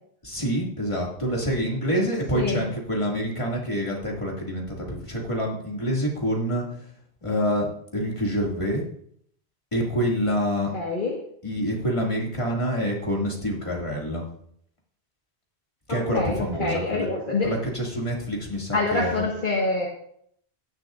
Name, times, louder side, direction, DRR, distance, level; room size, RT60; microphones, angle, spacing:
voice 1, 0.2-6.6 7.2-7.7 7.9-8.8 9.7-10.7 11.4-14.2 15.9-17.1 17.4-19.2, equal, 30° left, -3 dB, 2.5 m, -26 dB
voice 2, 10.7-11.2 15.9-17.6 18.7-19.9, left 3 dB, 50° left, -3 dB, 1.8 m, -26 dB
16.0 x 10.5 x 2.6 m, 0.68 s
omnidirectional pair, 1.1 m